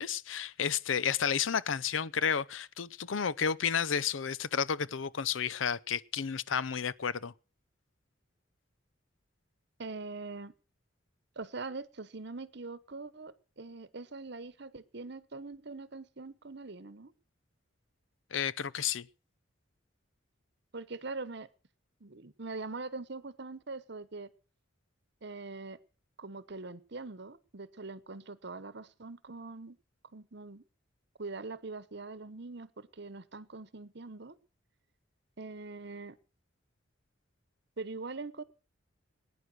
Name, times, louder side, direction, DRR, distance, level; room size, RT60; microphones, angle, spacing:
voice 1, 0.0-7.3 18.3-19.1, left 7 dB, 85° left, 0.7 m, -31 dB
voice 2, 9.8-10.5 11.4-17.1 20.7-21.5 22.0-24.3 25.2-25.8 26.2-29.8 30.1-30.6 31.2-34.4 35.4-36.2 37.8-38.4, right 3 dB, 60° right, 1.0 m, -43 dB
20.0 x 9.6 x 6.2 m
head